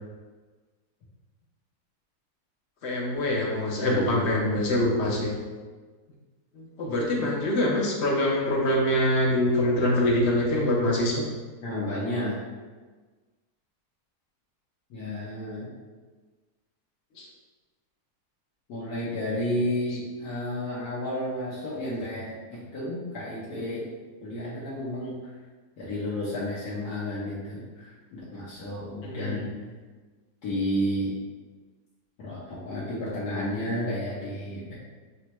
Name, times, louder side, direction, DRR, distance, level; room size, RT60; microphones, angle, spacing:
voice 1, 2.8-5.4 6.5-11.2 17.2-17.3 29.0-29.4, left 1 dB, 55° left, -2 dB, 0.8 m, -24 dB
voice 2, 3.8-4.3 11.6-12.4 14.9-15.7 18.7-23.9 24.2-25.1 25.8-29.5 30.4-31.2 32.2-34.8, left 1 dB, 70° left, -8 dB, 1.4 m, -31 dB
6.4 x 2.2 x 3.0 m, 1.4 s
omnidirectional pair, 1.7 m